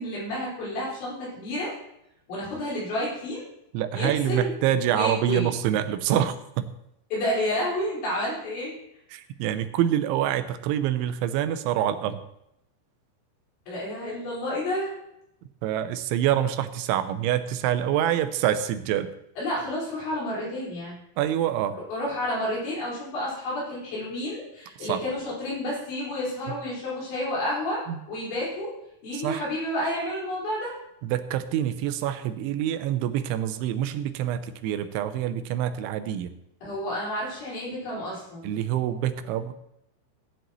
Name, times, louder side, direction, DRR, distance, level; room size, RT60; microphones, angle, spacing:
voice 1, 0.0-1.8 2.3-3.4 3.9-4.5 4.9-5.5 7.1-8.7 13.7-14.9 19.4-21.0 21.9-27.8 28.1-28.7 29.0-30.7 36.6-38.5, left 1 dB, 80° left, -6 dB, 7.2 m, -30 dB
voice 2, 3.7-6.7 9.1-12.2 15.6-19.1 21.2-21.8 24.8-25.0 27.9-28.0 29.1-29.5 31.0-36.3 38.4-39.5, right 11 dB, 90° right, 11 dB, 3.2 m, -26 dB
16.5 x 10.0 x 3.1 m, 0.81 s
omnidirectional pair, 5.2 m